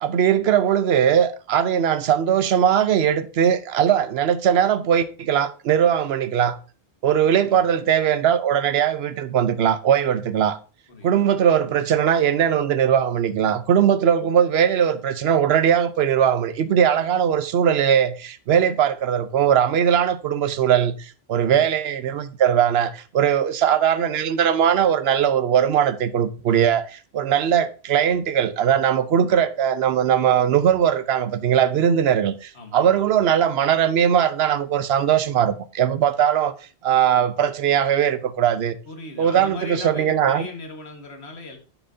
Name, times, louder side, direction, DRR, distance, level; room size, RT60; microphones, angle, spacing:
voice 1, 0.0-6.6 7.0-10.6 11.0-36.5 36.8-38.7 39.2-40.5, right 9 dB, 75° right, 0.9 m, -20 dB
voice 2, 38.8-41.6, left 2 dB, 85° left, 1.7 m, -38 dB
10.0 x 6.1 x 2.6 m
omnidirectional pair, 1.1 m